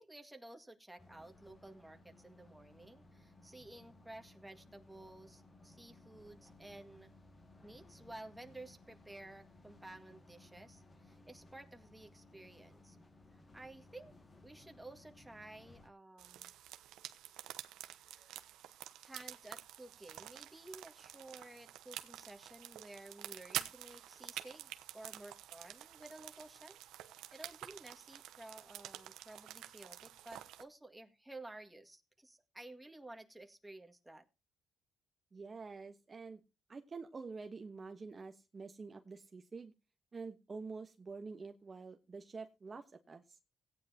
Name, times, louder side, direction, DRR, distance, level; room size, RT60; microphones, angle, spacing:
voice 1, 0.0-7.1 7.6-13.0 13.3-14.2 14.4-16.5 17.8-18.4 19.0-26.8 27.1-34.2, right 2 dB, 10° right, 5 dB, 2.0 m, -54 dB
sound 1, 1.0-15.9, left 2 dB, 30° left, 2.0 m, -61 dB
sound 2, 16.2-30.6, right 13 dB, 90° right, 1.0 m, -48 dB
voice 2, 35.3-36.4 36.7-39.7 40.1-43.4, right 4 dB, 30° right, 6 dB, 1.2 m, -47 dB
17.0 x 9.8 x 2.8 m, 0.27 s
cardioid pair, 90°, 0 cm